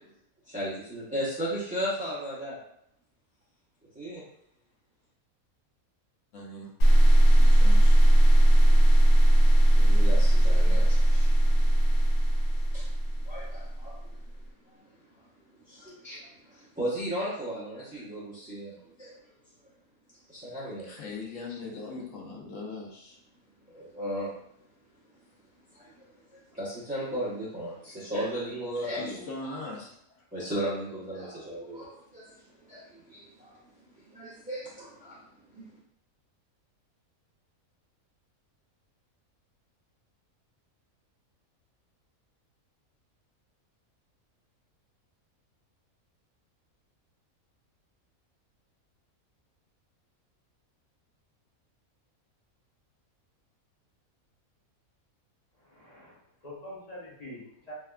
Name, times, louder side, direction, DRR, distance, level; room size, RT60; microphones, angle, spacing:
voice 1, 0.5-2.6 3.9-4.2 9.8-11.5 12.7-12.9 13.3-14.2 15.7-19.2 20.3-20.9 23.7-24.3 25.7-29.6 30.3-33.6 34.1-35.2 35.5-35.7, equal, 10° right, -10 dB, 0.3 m, -36 dB
voice 2, 6.3-6.7 7.3-8.0 9.3-9.4 20.8-23.2 29.0-30.0, left 3 dB, 65° left, -1 dB, 1.0 m, -40 dB
sound 1, 6.8-13.9, right 1 dB, 85° left, 1.2 m, -19 dB
voice 3, 55.6-57.7, left 1 dB, 35° left, -6 dB, 0.7 m, -45 dB
3.4 x 2.3 x 2.3 m, 0.73 s
omnidirectional pair, 1.5 m